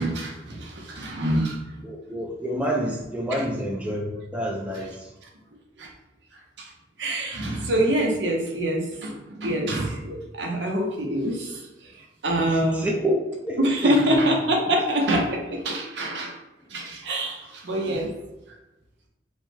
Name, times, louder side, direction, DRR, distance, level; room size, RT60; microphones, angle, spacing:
voice 1, 0.0-1.6 3.3-3.4 4.7-4.8 5.8-5.9 6.6-6.7 7.0-11.6 12.2-12.8 13.6-16.3 16.7-18.1, right 1 dB, 70° right, 0 dB, 0.8 m, -25 dB
voice 2, 1.8-4.9 12.4-13.2 13.4-14.2, equal, 5° right, -1 dB, 0.4 m, -27 dB
5.4 x 2.2 x 3.3 m, 1.0 s
head